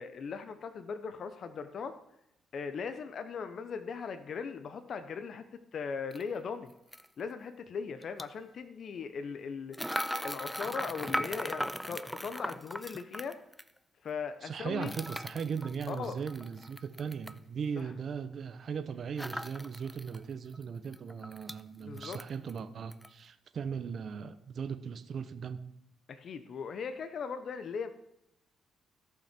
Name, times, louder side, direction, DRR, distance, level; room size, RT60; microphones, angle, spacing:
voice 1, 0.0-2.0 2.5-5.4 5.7-6.7 7.2-9.8 10.2-13.4 14.0-14.9 15.9-16.2 17.8-17.9 21.8-22.2 26.1-27.9, left 5 dB, 55° left, 9 dB, 0.8 m, -39 dB
sound 1, 6.1-6.2 6.9-7.1 8.0-8.3 9.7-13.7 14.8-17.4 19.2-20.2 20.5-20.6 20.9-21.6 22.0-22.6 22.9-23.1, equal, ahead, 0.4 m, -38 dB
voice 2, 14.4-25.6, right 6 dB, 55° right, 9 dB, 1.0 m, -38 dB
16.5 x 5.8 x 4.5 m, 0.82 s
cardioid pair, 90°, 0 cm